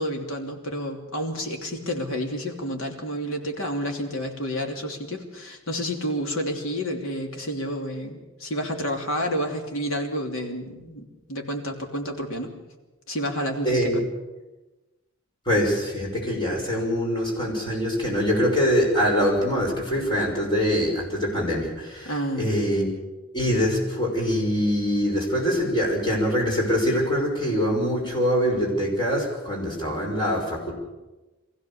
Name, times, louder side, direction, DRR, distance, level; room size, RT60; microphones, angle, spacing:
voice 1, 0.0-12.5 13.1-14.0 22.0-22.5, equal, 70° left, 2 dB, 3.1 m, -30 dB
voice 2, 13.6-14.0 15.5-22.9 23.3-30.7, equal, 20° left, -2 dB, 5.7 m, -24 dB
24.0 x 15.5 x 7.1 m, 1.1 s
head